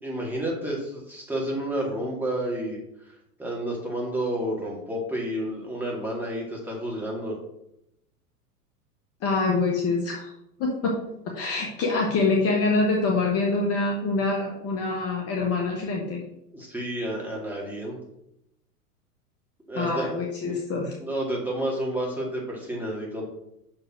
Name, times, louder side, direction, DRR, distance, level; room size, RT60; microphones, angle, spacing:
voice 1, 0.0-2.8 3.4-7.4 16.5-18.0 19.7-20.1 20.4-20.6 21.0-23.3, right 1 dB, 5° right, -3 dB, 2.3 m, -30 dB
voice 2, 9.2-10.3 10.6-11.0 11.3-16.2 19.7-20.9, left 3 dB, 30° left, 0 dB, 1.2 m, -25 dB
6.2 x 4.9 x 4.9 m, 0.81 s
hypercardioid pair, 100°, 46 cm